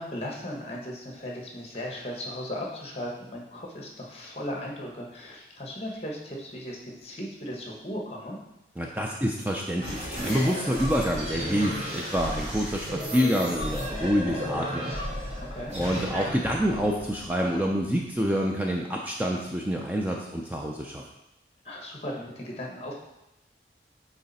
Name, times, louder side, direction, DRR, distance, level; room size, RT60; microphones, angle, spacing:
voice 1, 0.0-8.4 15.4-15.7 21.6-22.9, equal, 35° left, -1 dB, 1.3 m, -37 dB
voice 2, 8.8-14.9 15.7-21.0, equal, 10° right, -1 dB, 0.4 m, -27 dB
sound 1, 9.8-18.0, equal, 40° right, 1.7 m, -34 dB
8.7 x 3.3 x 4.2 m, 0.91 s
head